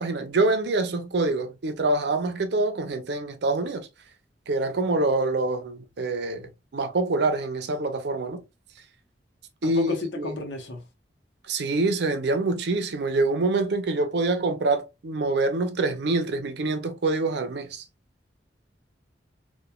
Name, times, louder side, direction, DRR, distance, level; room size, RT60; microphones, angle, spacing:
voice 1, 0.0-3.9 4.5-8.4 9.6-10.3 11.5-17.8, right 2 dB, 65° right, 0.5 m, -25 dB
voice 2, 9.6-10.8, left 3 dB, 90° left, 0.8 m, -32 dB
3.0 x 2.2 x 2.2 m
head